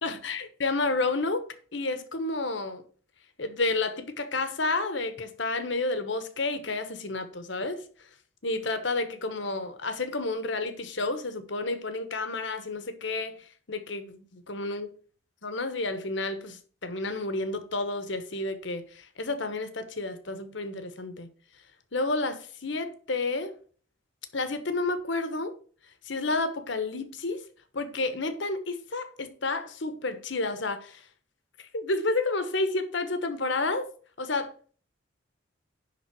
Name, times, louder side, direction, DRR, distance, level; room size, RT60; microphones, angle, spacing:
voice 1, 0.0-2.8 3.4-7.8 8.4-14.9 15.4-21.3 21.9-23.5 24.3-25.5 26.0-27.5 27.7-31.1 31.6-33.9 34.2-34.5, left 2 dB, 65° left, 1.2 m, -30 dB
10.5 x 3.9 x 6.3 m
head